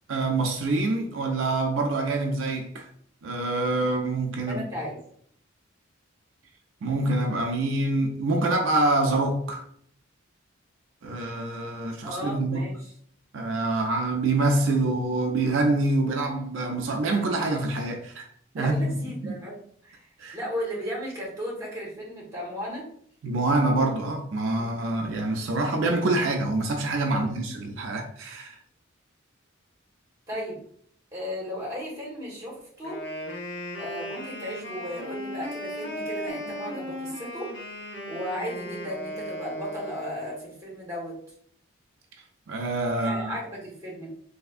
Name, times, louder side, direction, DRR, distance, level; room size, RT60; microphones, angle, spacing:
voice 1, 0.1-2.9 3.2-4.6 6.8-9.6 11.0-12.6 13.3-18.3 18.5-18.8 19.2-19.4 20.2-20.4 23.2-28.6 42.5-43.3, right 2 dB, 70° right, 0.4 m, -26 dB
voice 2, 4.5-5.0 12.0-12.9 18.6-20.1 20.3-22.9 24.5-24.8 27.1-27.4 30.3-30.6 31.1-33.0 33.8-37.5 38.1-41.2 43.0-44.1, equal, 15° right, 1.2 m, -35 dB
Wind instrument woodwind instrument, 32.8-40.5, equal, 55° left, 0.8 m, -36 dB
3.3 x 2.7 x 2.4 m
head